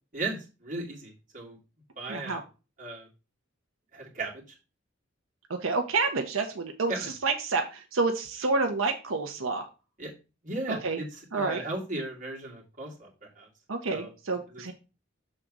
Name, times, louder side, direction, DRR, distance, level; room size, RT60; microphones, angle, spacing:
voice 1, 0.1-1.6 2.0-2.4 2.8-3.1 3.9-4.6 6.9-7.1 10.0-10.1 10.4-13.5 13.9-14.1 14.5-14.7, right 2 dB, 40° right, -3 dB, 2.3 m, -36 dB
voice 2, 2.1-2.4 5.5-9.7 10.7-11.0 11.3-11.6 13.7-14.7, right 3 dB, 85° right, 5 dB, 0.8 m, -29 dB
6.6 x 3.7 x 6.0 m, 0.32 s
head